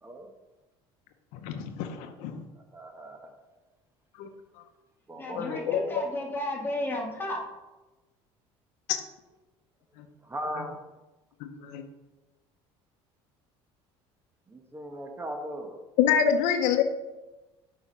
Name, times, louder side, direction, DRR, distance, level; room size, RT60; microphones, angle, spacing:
voice 1, 1.4-2.4 4.2-4.3 5.3-5.8 8.9-9.0 10.5-10.6 11.4-11.8 16.0-16.8, left 8 dB, 75° left, 7 dB, 0.8 m, -26 dB
voice 2, 2.7-3.3 5.1-5.9 10.2-10.7 14.5-15.8, right 1 dB, 20° right, 4 dB, 1.2 m, -38 dB
voice 3, 5.2-7.4, left 1 dB, 15° left, -1 dB, 2.1 m, -33 dB
7.2 x 4.9 x 5.5 m, 1.1 s
supercardioid pair, 95°, 12 cm